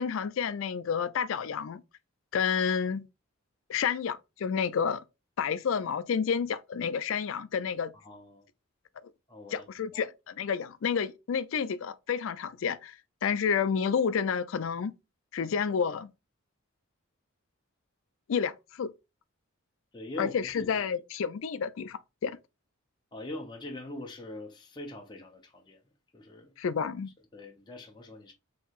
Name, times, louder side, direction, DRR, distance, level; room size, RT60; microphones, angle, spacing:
voice 1, 0.0-1.8 2.3-3.1 3.7-5.0 5.4-7.9 9.5-13.0 13.2-14.9 15.3-16.1 18.3-18.9 20.2-22.4 26.6-27.1, left 6 dB, 70° left, 0.4 m, -30 dB
voice 2, 7.9-8.5 9.3-9.7 9.9-10.0 19.9-20.8 23.1-25.8 26.1-26.5 27.3-28.3, left 1 dB, 20° left, 0.6 m, -42 dB
4.4 x 2.9 x 2.3 m
head